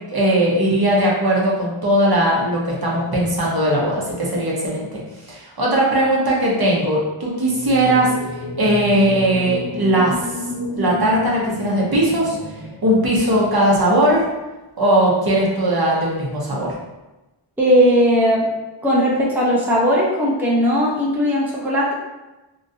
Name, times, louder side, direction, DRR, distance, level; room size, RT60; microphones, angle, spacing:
voice 1, 0.1-5.0 5.3-8.1 8.6-10.2 10.8-12.4 12.8-14.3 14.8-16.7, right 1 dB, 50° right, -5 dB, 0.9 m, -18 dB
sound 1, 7.4-13.6, left 2 dB, 75° left, 0.8 m, -31 dB
voice 2, 17.6-18.5 18.8-21.9, equal, 5° right, -5 dB, 0.6 m, -17 dB
3.0 x 2.5 x 2.6 m, 1.1 s
wide cardioid pair, 45°, 49 cm